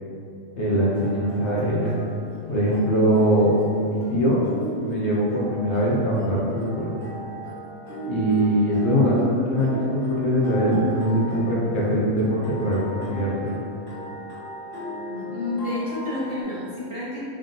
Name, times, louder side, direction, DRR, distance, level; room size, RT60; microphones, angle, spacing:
voice 1, 0.6-1.9 2.5-4.4 4.8-6.9 8.0-13.6, equal, 65° left, -5 dB, 0.9 m, -22 dB
sound 1, 0.9-16.4, equal, 40° left, 1.9 m, -37 dB
voice 2, 4.0-4.3 15.1-17.2, left 2 dB, 30° right, -11 dB, 0.7 m, -30 dB
3.6 x 2.6 x 3.7 m, 2.5 s
omnidirectional pair, 1.4 m